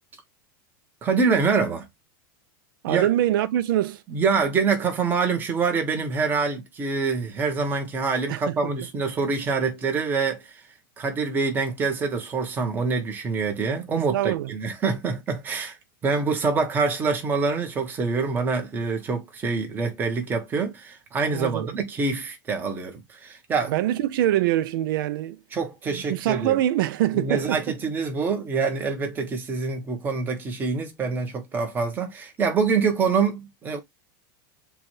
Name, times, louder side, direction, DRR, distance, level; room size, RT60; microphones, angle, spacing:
voice 1, 1.0-1.9 2.9-3.1 4.1-10.4 11.0-15.8 16.0-23.7 25.5-26.6 27.1-33.8, right 4 dB, 15° right, 0.9 m, -25 dB
voice 2, 2.8-4.0 8.3-8.6 14.1-14.5 21.3-21.7 23.7-25.4 25.9-27.8, right 13 dB, 75° right, 0.4 m, -24 dB
6.8 x 2.3 x 3.1 m
supercardioid pair, 165°, 11 cm